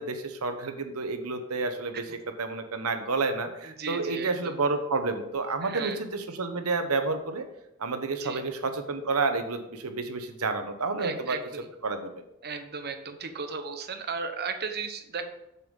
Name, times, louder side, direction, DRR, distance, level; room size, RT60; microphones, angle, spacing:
voice 1, 0.0-2.0 2.4-7.5 7.8-11.4 11.8-12.1, right 3 dB, 85° right, 7 dB, 1.1 m, -30 dB
voice 2, 3.6-4.5 5.6-6.0 8.2-8.4 11.0-11.7 12.4-15.2, right 5 dB, 50° right, 7 dB, 1.0 m, -35 dB
6.9 x 6.8 x 5.2 m, 0.85 s
head